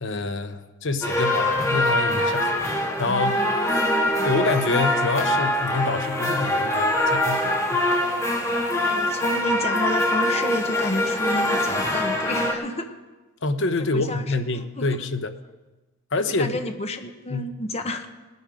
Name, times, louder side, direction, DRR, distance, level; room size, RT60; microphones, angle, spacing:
voice 1, 0.0-3.5 4.2-7.9 13.4-15.3 16.1-16.6 17.3-17.5, left 3 dB, 60° left, 10 dB, 0.9 m, -27 dB
sound 1, 1.0-12.5, left 1 dB, 15° left, 1.7 m, -23 dB
voice 2, 3.7-4.1 8.8-12.9 13.9-14.9 16.4-18.1, left 1 dB, 30° left, 6 dB, 1.2 m, -31 dB
19.5 x 9.6 x 5.0 m, 1.2 s
head